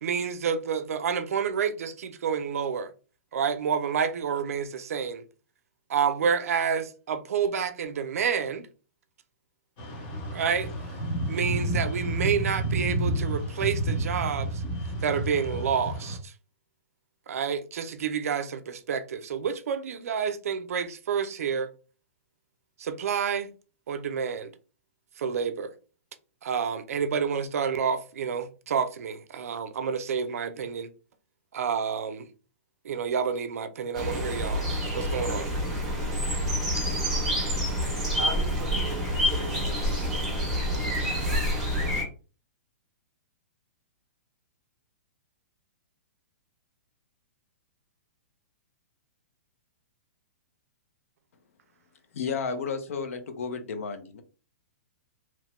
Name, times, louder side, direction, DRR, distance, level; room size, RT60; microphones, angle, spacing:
voice 1, 0.0-2.9 3.3-5.2 5.9-8.7 10.3-10.7 11.3-14.6 15.0-16.3 17.3-21.7 22.8-23.5 23.9-24.5 25.2-25.7 26.4-30.9 31.5-32.3 32.8-35.5, right 7 dB, 80° right, 0.4 m, -29 dB
sound 1, 9.8-16.2, right 1 dB, 30° left, 0.7 m, -30 dB
sound 2, 33.9-42.0, equal, ahead, 0.9 m, -28 dB
voice 2, 38.1-39.8 40.4-41.5, right 5 dB, 30° right, 0.5 m, -40 dB
voice 3, 52.1-54.2, left 5 dB, 70° left, 0.6 m, -32 dB
3.0 x 2.1 x 2.9 m
hypercardioid pair, 170°, 8 cm